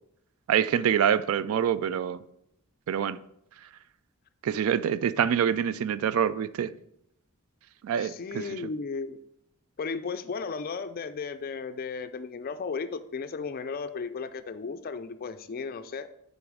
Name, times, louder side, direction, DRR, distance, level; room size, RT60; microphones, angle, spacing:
voice 1, 0.5-2.2 2.9-3.2 4.4-6.7 7.8-8.5, right 8 dB, 70° right, 0.3 m, -26 dB
voice 2, 8.0-9.2 9.8-16.1, left 4 dB, 40° left, 0.3 m, -35 dB
6.9 x 4.0 x 4.9 m
head